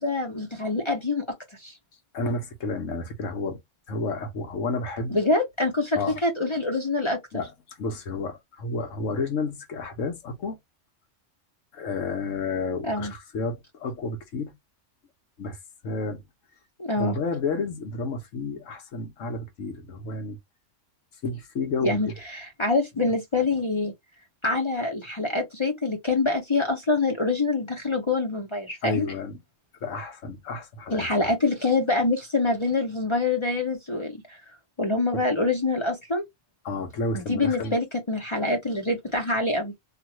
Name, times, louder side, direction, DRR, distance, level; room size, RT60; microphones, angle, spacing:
voice 1, 0.0-1.2 1.6-1.7 5.1-7.4 12.8-13.1 16.8-17.2 21.8-23.9 24.4-29.1 30.9-34.4 34.8-36.2 37.1-39.7, left 3 dB, 30° left, 0.6 m, -25 dB
voice 2, 2.1-3.6 3.9-5.2 6.0-6.2 7.3-10.6 11.7-14.5 15.4-15.6 15.8-16.2 17.0-20.4 21.2-22.0 28.8-29.4 29.8-31.3 35.1-35.2 36.6-37.8, left 3 dB, 85° left, 1.3 m, -31 dB
2.9 x 2.4 x 2.9 m
omnidirectional pair, 1.3 m